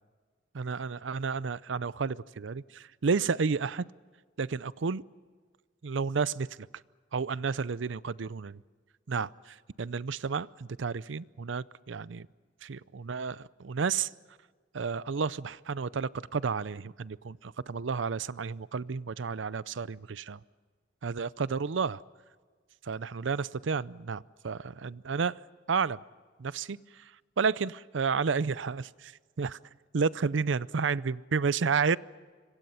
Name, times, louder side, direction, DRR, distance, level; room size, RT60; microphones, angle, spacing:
voice 1, 0.5-3.8 4.4-5.0 5.8-6.5 7.1-8.6 9.1-12.3 12.6-14.1 14.7-20.4 21.0-22.0 22.9-25.4 25.7-26.0 26.4-26.8 27.4-29.1 29.4-29.6 29.9-32.0, right 5 dB, 75° right, 19 dB, 0.6 m, -31 dB
26.0 x 25.0 x 5.7 m, 1.5 s
head